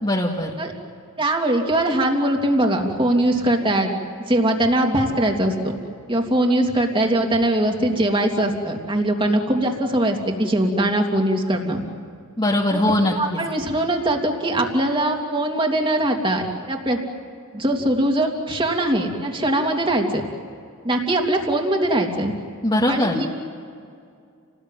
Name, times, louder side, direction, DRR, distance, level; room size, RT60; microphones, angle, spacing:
voice 1, 0.0-0.5 12.4-13.4 22.6-23.2, left 1 dB, 20° left, -3 dB, 2.0 m, -21 dB
voice 2, 1.2-3.9 4.3-5.5 6.1-11.8 12.7-12.8 13.1-17.0 17.5-20.2 20.8-22.3 22.9-23.3, right 1 dB, 25° right, 2 dB, 3.0 m, -21 dB
29.5 x 19.5 x 9.3 m, 2.3 s
head